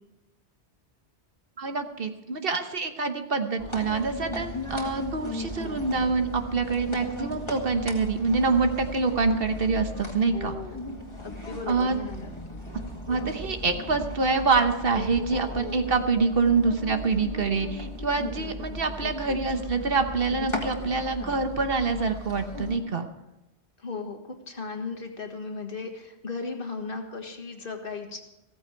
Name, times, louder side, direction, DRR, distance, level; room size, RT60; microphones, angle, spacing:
voice 1, 1.6-10.5 11.7-12.0 13.1-23.1, right 4 dB, 55° right, 7 dB, 1.2 m, -26 dB
sound 1, 3.6-22.8, left 1 dB, 25° left, 2.1 m, -37 dB
voice 2, 10.3-10.8 11.2-12.3 19.0-19.4 23.8-28.2, left 4 dB, 55° left, 4 dB, 1.8 m, -36 dB
15.5 x 14.5 x 4.5 m, 0.98 s
omnidirectional pair, 1.1 m